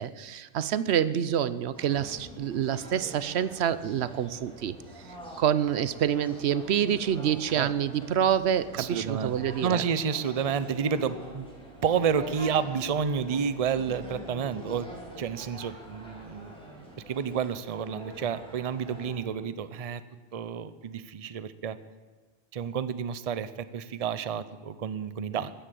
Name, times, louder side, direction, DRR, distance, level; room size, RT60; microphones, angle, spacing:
voice 1, 0.0-4.7 5.1-9.8, right 9 dB, 85° right, 15 dB, 0.9 m, -27 dB
sound 1, 1.7-19.1, equal, 5° left, 3.8 m, -45 dB
voice 2, 8.7-11.5 11.8-14.9 15.2-16.5 17.1-20.0 20.3-21.8 22.5-25.5, right 7 dB, 40° right, 14 dB, 0.7 m, -30 dB
15.0 x 10.0 x 7.6 m, 1.4 s
omnidirectional pair, 1.1 m